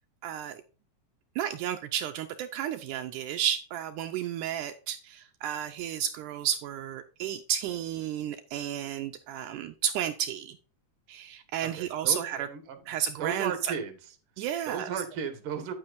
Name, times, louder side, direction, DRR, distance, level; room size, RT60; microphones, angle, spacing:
voice 1, 0.2-0.6 1.4-10.6 11.1-12.5 12.9-13.7 14.4-14.9, right 10 dB, 80° right, 7 dB, 2.1 m, -32 dB
voice 2, 11.6-12.8 13.2-13.9 14.7-15.7, right 7 dB, 50° right, 8 dB, 2.0 m, -35 dB
9.6 x 8.8 x 2.5 m, 0.36 s
omnidirectional pair, 3.7 m